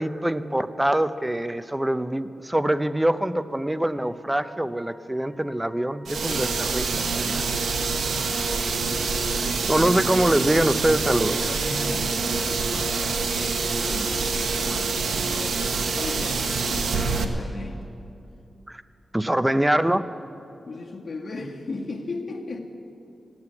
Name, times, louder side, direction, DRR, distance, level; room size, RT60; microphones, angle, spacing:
voice 1, 0.0-6.9 7.2-7.4 9.7-11.4 18.7-18.8 19.1-20.1, right 1 dB, 10° right, 12 dB, 0.5 m, -24 dB
Wind instrument woodwind instrument, 3.9-8.7, right 1 dB, 55° right, 4.8 m, -50 dB
sound 1, 6.1-17.2, right 4 dB, 85° right, 1.0 m, -26 dB
voice 2, 11.3-15.6 16.0-17.8 20.7-22.6, left 3 dB, 50° left, 0 dB, 1.7 m, -37 dB
15.5 x 9.6 x 9.6 m, 2.8 s
wide cardioid pair, 125°, 0 cm